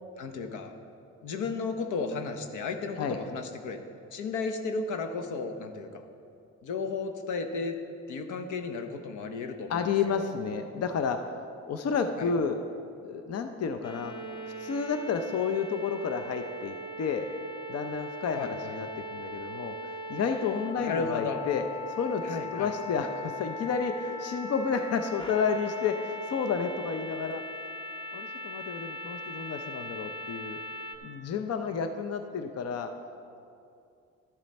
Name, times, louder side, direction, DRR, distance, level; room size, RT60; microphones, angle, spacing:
voice 1, 0.2-0.7 1.2-3.8 4.1-6.0 6.6-7.8 8.1-10.2 12.2-12.3 18.4-18.7 20.8-21.4 22.2-22.7, left 4 dB, 80° left, 7 dB, 0.9 m, -34 dB
voice 2, 9.7-11.2 11.7-12.6 13.0-14.1 14.6-17.3 17.7-19.8 20.1-27.4 28.1-30.6 31.0-32.9, left 6 dB, 55° left, 7 dB, 0.6 m, -31 dB
sound 1, 13.8-31.0, left 1 dB, 15° left, 0.7 m, -39 dB
12.5 x 7.5 x 4.2 m, 2.5 s
cardioid pair, 90°, 30 cm